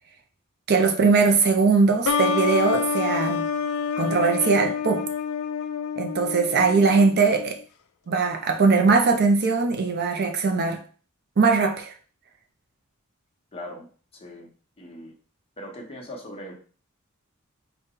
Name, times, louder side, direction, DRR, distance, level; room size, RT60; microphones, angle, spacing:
voice 1, 0.7-3.5 4.0-5.1 6.0-7.6 8.1-10.8 11.4-11.9, right 4 dB, 50° right, 0.5 m, -20 dB
sound 1, 2.0-7.5, left 6 dB, 80° left, 0.4 m, -28 dB
voice 2, 13.5-13.9 14.1-14.5 14.8-15.1 15.6-16.5, left 1 dB, 30° left, 0.9 m, -39 dB
4.0 x 2.2 x 3.7 m
head